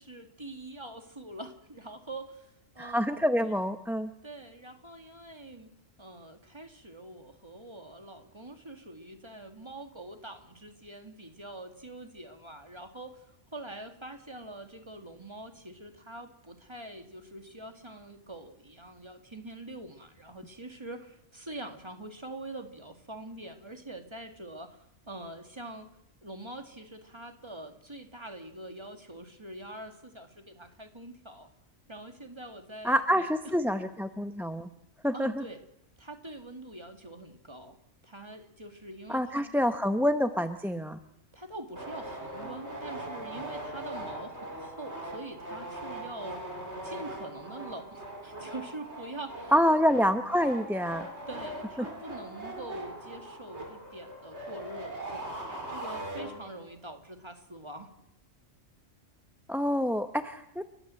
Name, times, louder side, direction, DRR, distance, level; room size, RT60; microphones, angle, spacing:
voice 1, 0.0-3.1 3.4-3.6 4.2-5.7 6.0-13.2 13.5-25.9 26.2-31.5 31.9-33.3 35.1-35.6 36.0-37.8 38.0-39.5 41.3-46.4 46.8-49.5 51.3-57.9, right 1 dB, 20° right, 6 dB, 2.1 m, -44 dB
voice 2, 2.8-4.1 32.8-34.7 35.0-35.4 39.1-41.0 49.5-51.0 59.5-60.6, equal, ahead, 8 dB, 0.7 m, -27 dB
sound 1, 41.8-56.7, right 1 dB, 60° right, 4.5 m, -41 dB
29.5 x 13.0 x 7.7 m, 0.81 s
omnidirectional pair, 1.3 m